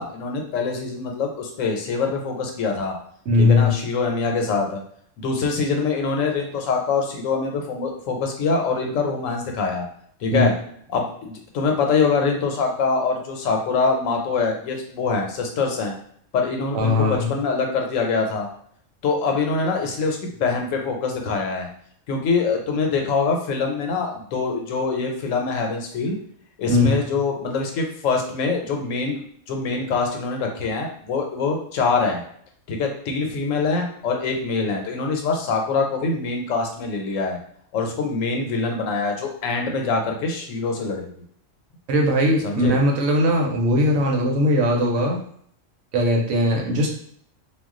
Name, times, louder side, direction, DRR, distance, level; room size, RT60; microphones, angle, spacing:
voice 1, 0.0-3.0 3.3-4.8 5.2-9.9 10.2-10.5 10.9-15.9 16.3-18.5 19.0-21.7 22.1-26.2 26.6-32.2 32.7-37.4 37.7-41.1 42.4-42.8, left 4 dB, 80° left, 2 dB, 1.0 m, -24 dB
voice 2, 3.3-3.7 10.3-10.5 16.7-17.3 26.7-27.0 41.9-45.2 45.9-46.9, left 1 dB, 75° right, 1 dB, 1.0 m, -19 dB
2.3 x 2.2 x 3.6 m, 0.63 s
omnidirectional pair, 1.3 m